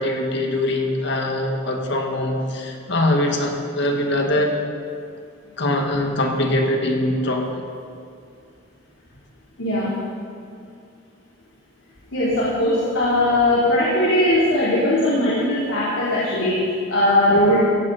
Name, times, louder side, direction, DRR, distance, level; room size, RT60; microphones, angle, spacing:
voice 1, 0.0-4.6 5.6-7.6 13.4-13.8, left 1 dB, 60° left, 2 dB, 2.0 m, -22 dB
voice 2, 9.6-9.9 12.1-17.6, left 1 dB, 80° left, -10 dB, 3.9 m, -19 dB
17.5 x 15.0 x 4.4 m, 2.3 s
head